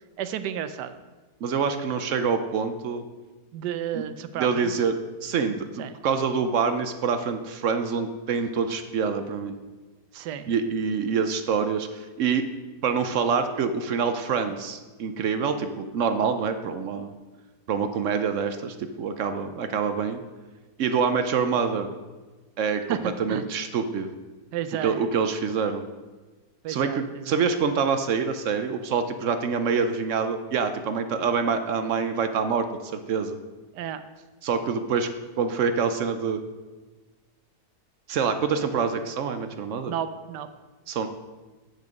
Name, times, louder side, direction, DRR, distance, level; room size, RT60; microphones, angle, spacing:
voice 1, 0.2-0.9 3.5-4.7 5.8-5.9 10.1-10.5 22.9-23.4 24.5-25.0 26.6-27.4 33.7-34.0 39.9-40.5, right 9 dB, 80° right, 11 dB, 1.2 m, -32 dB
voice 2, 1.4-3.0 3.9-4.0 4.3-4.9 5.2-9.5 10.5-12.5 12.8-17.1 17.7-20.2 20.8-21.9 22.6-24.1 24.8-25.8 26.7-32.7 32.9-33.4 34.4-35.1 35.4-36.4 38.1-39.9 40.9-41.1, right 6 dB, 65° right, 8 dB, 0.8 m, -26 dB
8.4 x 6.6 x 5.1 m, 1.3 s
omnidirectional pair, 1.8 m